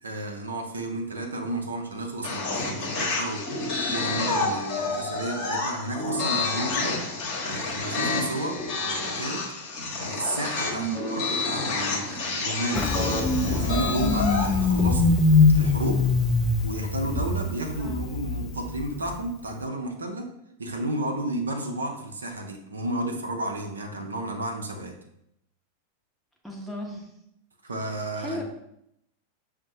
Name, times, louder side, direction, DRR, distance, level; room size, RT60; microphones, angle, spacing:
voice 1, 0.0-7.0 7.4-9.4 10.0-13.1 13.5-15.1 15.5-16.0 16.6-20.3 20.6-24.9 27.6-28.4, right 1 dB, 75° right, 3 dB, 0.5 m, -32 dB
sound 1, 2.2-14.6, left 3 dB, 40° left, 1.0 m, -29 dB
voice 2, 10.7-11.0 17.8-18.0 26.4-27.1 28.2-28.4, right 3 dB, ahead, -1 dB, 0.8 m, -34 dB
Engine starting, 12.7-19.2, left 3 dB, 20° left, 0.4 m, -23 dB
6.0 x 2.1 x 2.6 m, 0.77 s
figure-of-eight pair, 90°, 0 cm